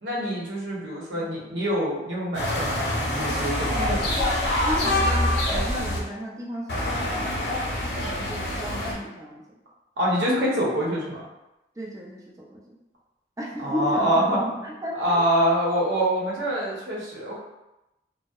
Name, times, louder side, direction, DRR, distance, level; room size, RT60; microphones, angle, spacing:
voice 1, 0.0-4.0 10.0-11.2 13.6-14.4 15.0-17.4, equal, 80° right, -5 dB, 0.8 m, -25 dB
sound 1, 2.3-6.0 6.7-8.9, left 1 dB, 60° left, 0.6 m, -25 dB
voice 2, 3.7-4.3 4.6-7.3 7.8-9.4 11.8-12.8 13.4-15.2, equal, 20° right, -3 dB, 0.4 m, -34 dB
2.6 x 2.0 x 2.3 m, 0.94 s
head